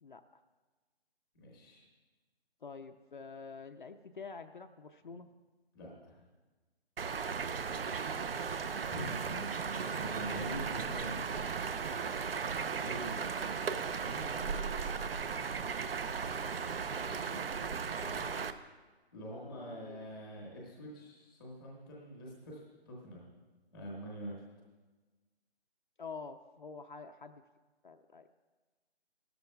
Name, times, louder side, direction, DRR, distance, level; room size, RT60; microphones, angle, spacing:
voice 1, 0.0-0.4 2.6-5.3 9.4-9.5 17.0-18.5 19.3-20.0 26.0-27.4 27.8-28.3, left 4 dB, 50° left, 6 dB, 0.5 m, -48 dB
voice 2, 1.3-1.8 5.1-5.2 5.7-6.2 8.9-11.7 12.6-13.2 14.0-14.7 19.1-23.2 23.7-24.3, right 1 dB, ahead, -3 dB, 0.8 m, -45 dB
sound 1, 7.0-18.5, right 6 dB, 60° right, 0.7 m, -36 dB
17.5 x 13.0 x 2.2 m, 1.3 s
hypercardioid pair, 170°, 32 cm